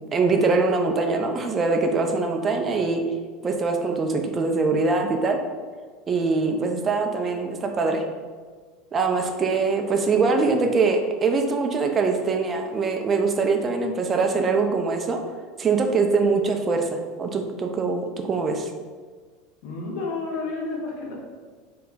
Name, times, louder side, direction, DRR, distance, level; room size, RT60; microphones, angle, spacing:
voice 1, 0.1-3.0 3.4-5.4 6.1-8.0 8.9-15.2 15.6-18.7, right 4 dB, 30° right, 4 dB, 0.4 m, -23 dB
voice 2, 19.6-21.2, left 3 dB, 65° left, -1 dB, 0.6 m, -30 dB
2.2 x 2.2 x 3.7 m, 1.5 s
hypercardioid pair, 75°, 0 cm